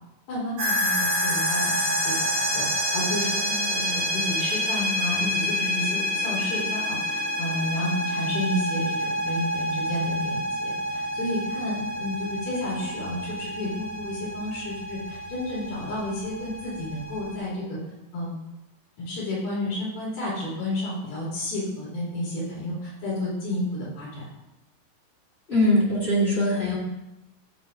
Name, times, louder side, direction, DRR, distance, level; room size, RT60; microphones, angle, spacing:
voice 1, 0.3-2.7 2.9-17.8 18.1-18.4 19.0-24.3, left 1 dB, 65° left, -6 dB, 5.0 m, -31 dB
sound 1, 0.6-17.4, equal, 40° right, 3.0 m, -28 dB
voice 2, 25.5-26.8, left 1 dB, 30° left, -6 dB, 1.2 m, -21 dB
12.5 x 7.8 x 2.9 m, 0.97 s
omnidirectional pair, 4.9 m